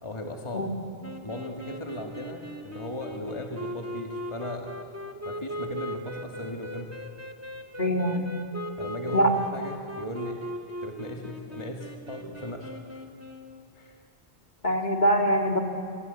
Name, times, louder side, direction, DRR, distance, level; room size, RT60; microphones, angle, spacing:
voice 1, 0.0-0.6 1.2-4.8 5.3-7.0 8.8-10.4 10.8-13.0 13.8-14.0, left 1 dB, 25° left, 2 dB, 2.0 m, -37 dB
sound 1, 1.0-13.6, equal, 15° right, 2.0 m, -39 dB
voice 2, 7.8-8.2 9.1-9.3 14.6-15.6, equal, 45° left, 3 dB, 2.5 m, -23 dB
27.0 x 25.0 x 8.2 m, 2.5 s
omnidirectional pair, 1.1 m